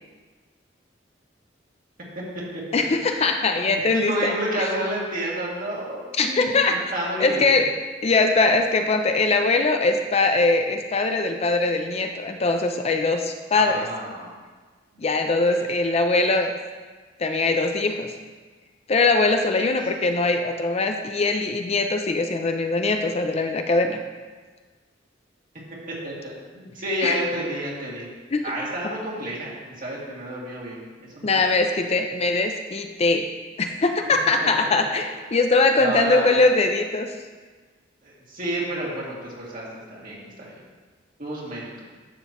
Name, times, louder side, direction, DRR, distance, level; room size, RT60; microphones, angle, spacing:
voice 1, 2.7-4.6 6.1-6.8 7.2-7.7 8.0-13.9 15.0-16.5 17.2-18.1 18.9-24.0 27.0-27.2 28.3-28.5 31.2-33.3 33.6-37.1, left 3 dB, 35° left, 5 dB, 0.5 m, -21 dB
voice 2, 3.6-7.6 13.5-14.3 14.9-15.1 15.3-15.8 19.5-19.6 25.9-28.1 28.4-31.5 34.4-34.7 35.8-36.3 38.0-40.6 41.2-41.7, right 1 dB, 50° right, -5 dB, 2.3 m, -31 dB
10.5 x 6.9 x 3.0 m, 1.4 s
head